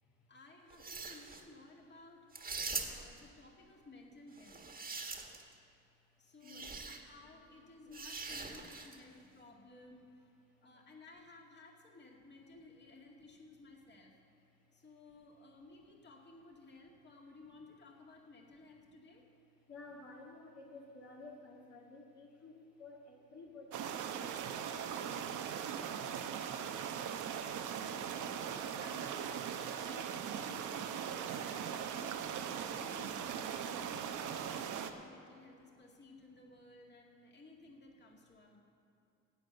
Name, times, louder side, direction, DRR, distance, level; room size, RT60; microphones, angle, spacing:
voice 1, 0.3-2.3 2.8-4.6 6.2-10.3 10.6-14.1 14.7-19.2 26.3-27.1 28.2-30.9 31.4-32.3 32.5-38.6, left 2 dB, 35° left, 0 dB, 2.1 m, -57 dB
sound 1, 0.7-1.4 2.3-3.2 4.4-5.5 6.4-7.0 7.9-9.0, right 4 dB, 30° right, 1.5 m, -43 dB
voice 2, 6.4-6.8 7.9-8.0 10.6-10.9 14.7-14.8 19.7-24.6, left 3 dB, 55° left, -3 dB, 1.9 m, -54 dB
sound 2, 23.7-34.9, right 8 dB, 80° right, 0.9 m, -40 dB
11.0 x 8.4 x 8.0 m, 2.7 s
cardioid pair, 90°, 30 cm